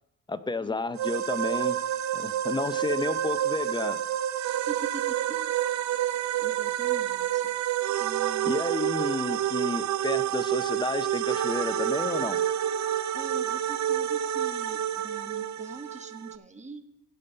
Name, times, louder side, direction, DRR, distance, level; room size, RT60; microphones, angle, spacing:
voice 1, 0.3-1.8 2.1-4.0 8.4-12.4, left 3 dB, 15° left, 12 dB, 0.6 m, -31 dB
sound 1, 1.0-16.4, right 11 dB, 70° right, 0.6 m, -28 dB
voice 2, 4.7-5.5 6.4-7.4 8.0-8.6 8.8-8.9 13.1-16.8, right 3 dB, 25° right, 8 dB, 1.2 m, -43 dB
16.5 x 5.5 x 5.3 m, 0.79 s
cardioid pair, 90°, 30 cm